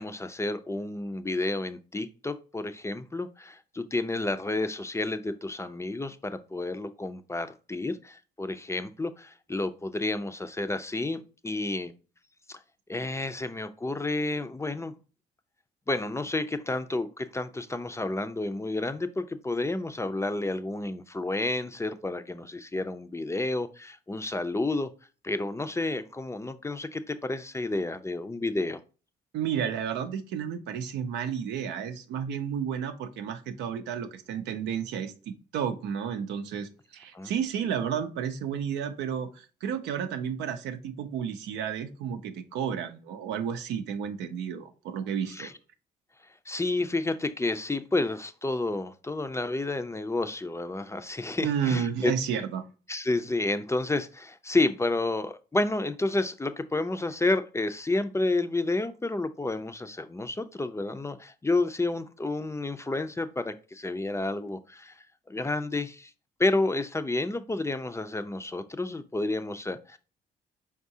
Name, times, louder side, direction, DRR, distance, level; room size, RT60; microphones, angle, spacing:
voice 1, 0.0-11.9 12.5-12.6 12.9-14.9 15.9-24.9 25.2-28.8 37.1-37.3 45.3-45.5 46.5-52.1 52.9-66.1 66.4-70.0, left 2 dB, 15° left, 0.4 m, -30 dB
voice 2, 29.3-45.5 51.4-52.6, right 8 dB, 85° right, 0.5 m, -32 dB
4.7 x 3.6 x 2.7 m
supercardioid pair, 55°, 18 cm